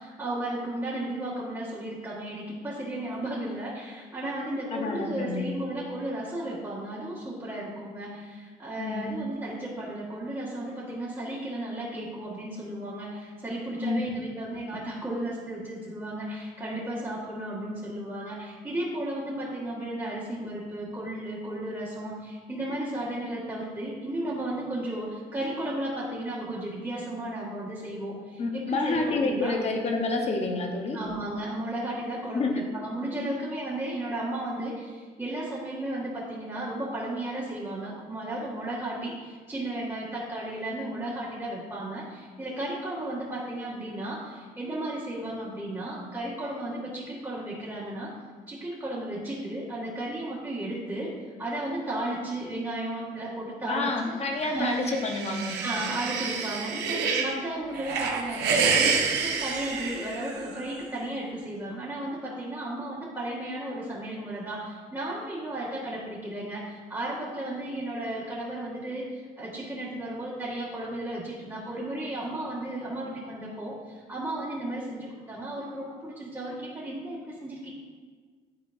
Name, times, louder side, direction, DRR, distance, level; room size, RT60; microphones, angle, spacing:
voice 1, 0.0-29.5 30.9-48.1 48.5-51.1 51.4-54.2 54.4-54.9 55.6-77.7, right 1 dB, 15° right, -9 dB, 1.7 m, -34 dB
voice 2, 4.7-5.4 8.8-9.1 13.8-14.0 28.4-31.0 32.3-32.6 53.7-55.7, left 3 dB, 40° left, 2 dB, 1.1 m, -28 dB
sound 1, 54.6-57.3 57.7-60.6, right 5 dB, 90° right, 0.9 m, -28 dB
11.5 x 4.4 x 2.6 m, 1.5 s
cardioid pair, 110°, 17 cm